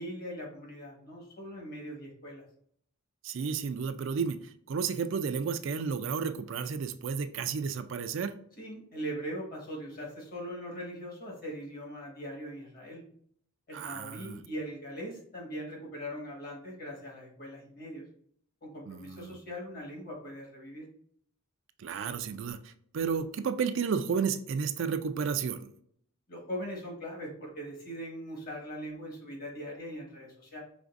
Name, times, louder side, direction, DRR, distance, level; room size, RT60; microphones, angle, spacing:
voice 1, 0.0-2.4 8.6-13.0 13.7-18.0 18.6-20.9 26.3-30.6, equal, 45° left, -1 dB, 1.4 m, -41 dB
voice 2, 3.2-4.4 4.7-8.3 13.7-14.4 18.9-19.4 21.8-25.7, right 6 dB, 65° right, 9 dB, 0.4 m, -32 dB
5.1 x 3.4 x 2.5 m, 0.64 s
head